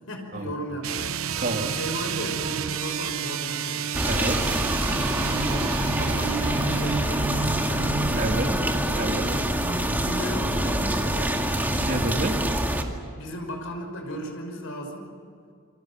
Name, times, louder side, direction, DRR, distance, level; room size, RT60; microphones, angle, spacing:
voice 1, 0.1-3.9 5.2-8.7 9.3-11.7 13.1-15.1, equal, 75° left, 3 dB, 5.7 m, -36 dB
sound 1, 0.8-8.3, right 6 dB, 80° right, 0.8 m, -30 dB
voice 2, 1.4-1.7 4.1-4.4 8.2-8.5 9.0-9.3 11.8-12.4, right 2 dB, 45° right, 2 dB, 2.9 m, -28 dB
sound 2, 3.9-12.8, right 1 dB, 10° right, 2.2 m, -25 dB
28.0 x 23.5 x 7.5 m, 2.4 s
head